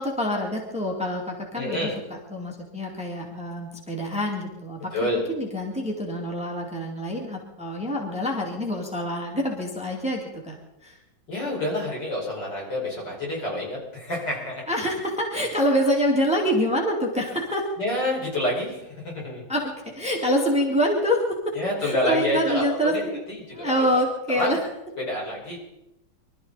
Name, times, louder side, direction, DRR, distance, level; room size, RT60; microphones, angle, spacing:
voice 1, 0.0-1.9 2.3-4.9 5.3-10.5 10.8-11.0 14.7-17.7 19.5-21.5 21.8-23.2 23.5-24.6, equal, 5° right, 0 dB, 2.5 m, -26 dB
voice 2, 1.5-2.0 4.9-5.2 11.3-14.6 17.8-19.4 21.5-23.9 24.4-24.6 25.0-25.6, left 1 dB, 65° left, -3 dB, 6.4 m, -28 dB
24.5 x 13.5 x 4.2 m, 0.89 s
omnidirectional pair, 2.1 m